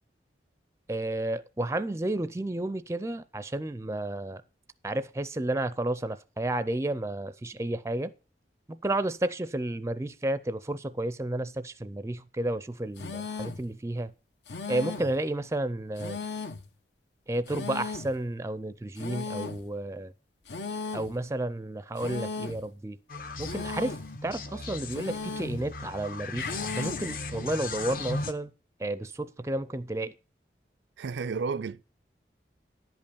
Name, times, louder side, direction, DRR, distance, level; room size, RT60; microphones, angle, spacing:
voice 1, 0.9-4.4 4.8-8.1 8.7-14.1 14.7-16.2 17.3-20.1 20.9-23.0 23.4-28.5 28.8-30.1, right 1 dB, 15° right, 0.4 m, -32 dB
sound 1, 13.0-13.7 14.5-15.2 16.0-16.7 17.5-18.2 19.0-19.7 20.5-21.2 22.0-22.7 23.4-24.1 24.9-25.6 26.4-27.1, left 4 dB, 75° left, 0.9 m, -37 dB
sound 2, 23.1-28.3, left 3 dB, 50° left, 0.9 m, -37 dB
voice 2, 31.0-31.8, right 5 dB, 85° right, 0.4 m, -32 dB
10.5 x 5.4 x 6.9 m
head